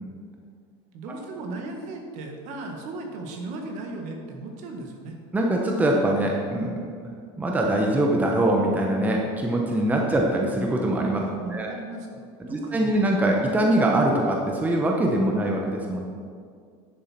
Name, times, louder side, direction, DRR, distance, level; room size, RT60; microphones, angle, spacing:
voice 1, 0.9-5.2 11.2-12.9, right 2 dB, 55° right, 2 dB, 1.7 m, -37 dB
voice 2, 5.3-11.2 11.5-11.8 12.4-16.1, right 1 dB, 10° right, 0 dB, 0.9 m, -23 dB
10.5 x 7.2 x 4.4 m, 2.2 s
cardioid pair, 150°, 14 cm